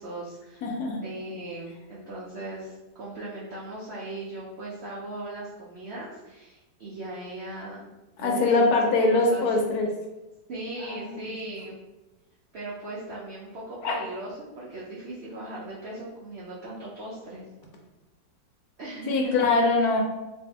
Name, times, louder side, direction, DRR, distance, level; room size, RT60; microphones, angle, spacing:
voice 1, 0.0-0.7 1.0-7.8 8.2-9.6 10.5-11.8 12.5-17.4 18.8-19.5, right 2 dB, 70° right, -6 dB, 0.6 m, -38 dB
voice 2, 0.6-1.0 8.2-9.9 10.8-11.3 13.8-14.0 19.1-20.0, left 3 dB, 70° left, 1 dB, 1.0 m, -23 dB
2.6 x 2.6 x 3.4 m, 1.0 s
omnidirectional pair, 1.8 m